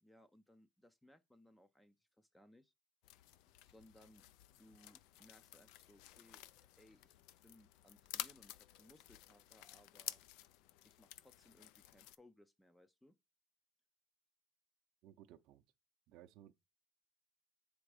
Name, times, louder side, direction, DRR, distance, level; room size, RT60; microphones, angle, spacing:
voice 1, 0.0-2.7 3.6-4.3 4.6-6.4 6.8-10.2 10.8-13.2, left 1 dB, 5° left, 0.4 m, -66 dB
sound 1, 3.0-12.2, left 13 dB, 75° left, 0.4 m, -52 dB
voice 2, 15.0-15.6 16.1-16.5, right 12 dB, 60° right, 0.5 m, -59 dB
8.6 x 3.5 x 4.8 m
cardioid pair, 155°, 0 cm